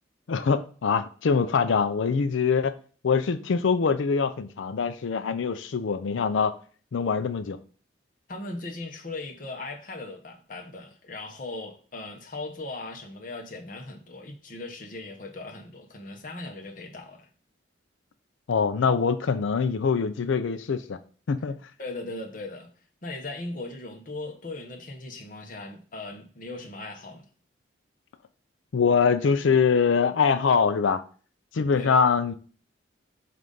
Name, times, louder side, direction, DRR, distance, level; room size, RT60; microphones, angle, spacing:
voice 1, 0.3-2.7 3.0-6.5 6.9-7.6 18.5-21.0 21.3-21.6 28.7-31.0 31.5-32.3, left 5 dB, 80° left, 0.4 m, -23 dB
voice 2, 8.3-17.3 21.8-22.7 23.0-27.3 31.7-32.0, left 2 dB, 45° left, 0.9 m, -38 dB
7.6 x 2.5 x 5.3 m
head